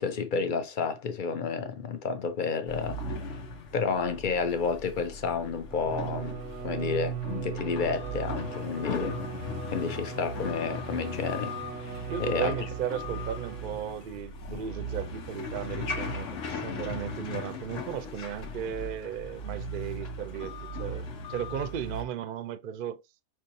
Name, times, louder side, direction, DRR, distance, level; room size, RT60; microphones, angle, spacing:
voice 1, 0.0-3.0 3.3-3.4 3.7-6.4 6.6-11.5 11.8-12.6, left 5 dB, 50° left, 0.8 m, -31 dB
sound 1, 2.7-22.0, left 2 dB, 85° left, 1.3 m, -38 dB
Bowed string instrument, 5.6-13.9, right 8 dB, 90° right, 1.0 m, -39 dB
voice 2, 12.1-23.0, right 9 dB, 60° right, 0.6 m, -36 dB
5.5 x 3.0 x 2.6 m
omnidirectional pair, 1.2 m